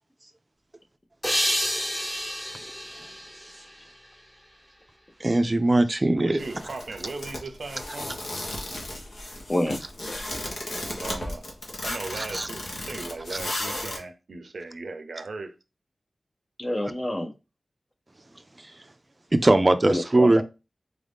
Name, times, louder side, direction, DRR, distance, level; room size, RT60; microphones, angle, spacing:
sound 1, 1.2-4.4, equal, 15° left, 1.1 m, -30 dB
voice 1, 5.2-6.4 12.1-12.5 13.3-13.4 19.3-20.4, right 2 dB, 30° right, 0.4 m, -20 dB
voice 2, 6.2-8.2 11.0-11.5 11.8-15.5, right 3 dB, 85° right, 0.5 m, -37 dB
sound 2, 6.4-14.0, left 1 dB, 85° left, 1.2 m, -34 dB
voice 3, 16.6-17.3 19.9-20.4, left 1 dB, 30° left, 0.7 m, -27 dB
4.1 x 2.6 x 3.4 m
wide cardioid pair, 85°, 0 cm